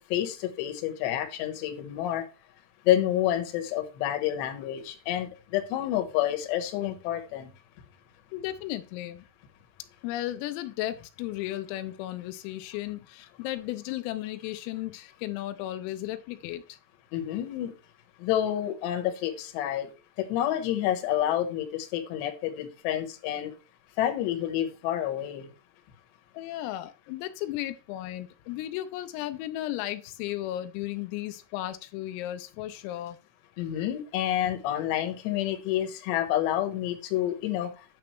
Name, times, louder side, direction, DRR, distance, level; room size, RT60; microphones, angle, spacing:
voice 1, 0.0-2.2 2.9-7.5 17.1-17.7 18.2-19.9 20.2-23.5 24.0-25.5 33.6-37.7, left 12 dB, 70° left, 5 dB, 3.0 m, -29 dB
voice 2, 8.3-9.2 10.0-16.8 26.3-33.2, left 14 dB, 85° left, 9 dB, 3.4 m, -35 dB
9.6 x 7.0 x 3.1 m, 0.31 s
omnidirectional pair, 5.9 m